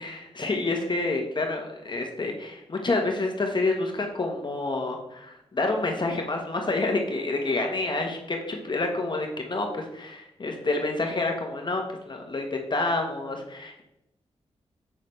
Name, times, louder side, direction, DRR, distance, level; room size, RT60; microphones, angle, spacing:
voice 1, 0.0-13.8, left 2 dB, 40° left, 2 dB, 1.2 m, -28 dB
7.5 x 6.5 x 3.2 m, 0.85 s
cardioid pair, 65°, 12 cm